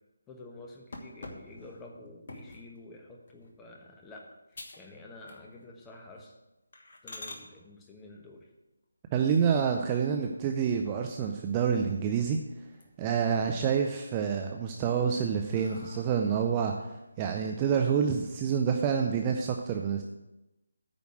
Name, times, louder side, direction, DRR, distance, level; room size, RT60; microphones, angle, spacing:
voice 1, 0.3-6.4 7.0-8.5, left 2 dB, 10° left, 0 dB, 1.1 m, -49 dB
sound 1, 0.9-2.7 3.3-3.6 4.0-4.1 4.5-4.9 5.2-5.7 6.1-6.2 6.7-7.4 9.4-10.1 10.6-10.7 11.1-11.2 11.5-12.3 12.6-13.2 13.6-14.2 14.8-16.5, left 2 dB, 45° left, 1.4 m, -47 dB
voice 2, 9.1-12.4 13.0-20.0, right 7 dB, 20° right, 4 dB, 0.5 m, -28 dB
9.0 x 5.1 x 7.7 m, 0.97 s
figure-of-eight pair, 155°, 0 cm